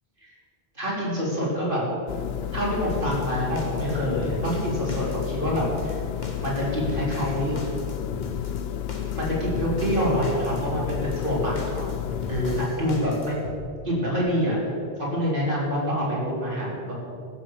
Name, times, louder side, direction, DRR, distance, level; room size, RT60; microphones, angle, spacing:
voice 1, 0.7-1.8 2.5-6.0 6.4-7.6 9.1-11.9 12.3-13.4 13.8-14.6 15.0-16.9, equal, 55° right, -5 dB, 4.3 m, -26 dB
sound 1, 2.1-12.7, left 10 dB, 80° left, 0.8 m, -31 dB
sound 2, 2.9-13.6, left 2 dB, 45° left, 1.5 m, -38 dB
15.5 x 7.2 x 7.3 m, 2.4 s
omnidirectional pair, 1.0 m